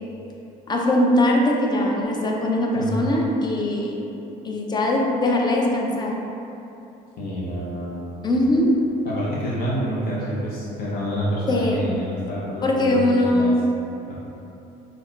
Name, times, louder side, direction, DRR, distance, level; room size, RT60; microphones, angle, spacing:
voice 1, 0.7-4.0 4.4-6.1 8.2-8.7 11.5-11.9 12.6-13.5, left 1 dB, 25° left, -1 dB, 0.5 m, -21 dB
voice 2, 2.7-3.1 7.2-7.9 9.0-13.5 14.1-14.2, equal, 60° left, -7 dB, 0.7 m, -28 dB
5.4 x 2.3 x 2.2 m, 2.9 s
cardioid pair, 110°, 17 cm